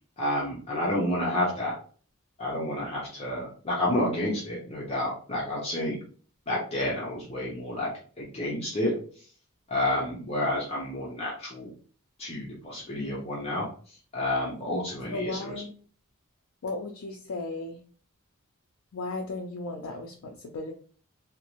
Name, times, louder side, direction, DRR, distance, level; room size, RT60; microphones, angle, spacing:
voice 1, 0.2-1.7 2.4-6.0 6.5-7.9 8.2-8.9 9.7-11.7 12.2-13.7 14.1-15.5, left 1 dB, 30° left, -4 dB, 0.6 m, -29 dB
voice 2, 15.1-15.7 16.6-17.8 18.9-20.7, left 2 dB, 70° left, 1 dB, 0.4 m, -35 dB
2.5 x 2.0 x 2.9 m, 0.43 s
head